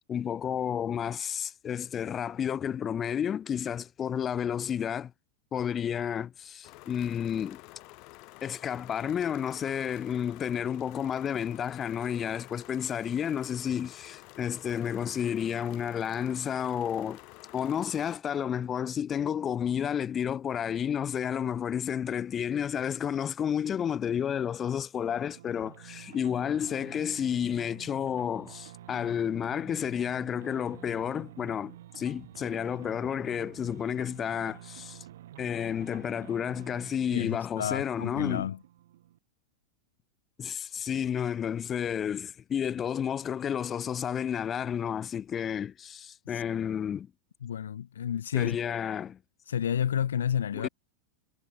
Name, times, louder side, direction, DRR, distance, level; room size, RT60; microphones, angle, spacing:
voice 1, 0.1-5.1 5.5-7.6 8.4-17.2 17.5-35.0 35.4-38.5 40.4-47.1 48.3-49.2 50.5-50.7, left 8 dB, 25° left, 0.9 m, -31 dB
sound 1, 6.6-18.2, left 27 dB, 45° left, 4.0 m, -50 dB
sound 2, 25.1-39.2, right 13 dB, 65° right, 3.0 m, -49 dB
voice 2, 37.1-38.6 46.3-46.4 47.4-48.6 49.5-50.7, left 9 dB, 75° left, 0.5 m, -30 dB
figure-of-eight pair, 95°, 0 cm